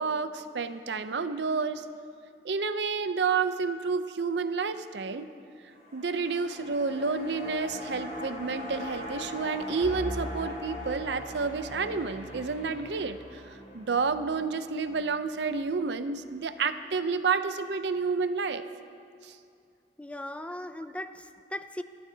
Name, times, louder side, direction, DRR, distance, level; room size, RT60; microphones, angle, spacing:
voice 1, 0.0-1.8 2.4-5.3 5.9-13.4 13.7-18.6 19.2-19.3, right 4 dB, 75° right, 11 dB, 0.6 m, -30 dB
sound 1, 5.6-16.1 16.4-16.5, left 1 dB, 45° left, 3.7 m, -42 dB
Bowed string instrument, 9.8-14.4, left 1 dB, 45° right, 2.5 m, -43 dB
voice 2, 20.0-21.8, left 1 dB, 5° left, 9 dB, 0.4 m, -38 dB
30.0 x 12.5 x 2.8 m, 2.4 s
head